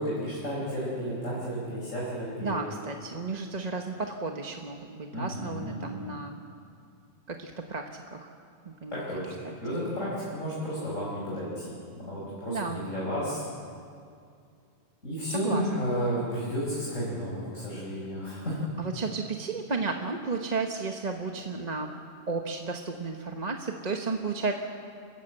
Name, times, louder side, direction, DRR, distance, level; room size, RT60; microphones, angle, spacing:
voice 1, 0.0-2.6 5.1-6.0 8.9-9.3 9.6-13.5 15.0-18.6, equal, 90° left, -6 dB, 5.3 m, -32 dB
voice 2, 2.4-6.4 7.3-8.3 8.8-9.0 9.4-9.6 10.0-10.2 12.5-12.8 15.3-15.6 18.8-21.9 22.3-24.5, right 4 dB, 35° right, 3 dB, 1.2 m, -33 dB
29.0 x 14.5 x 8.0 m, 2.4 s
omnidirectional pair, 1.3 m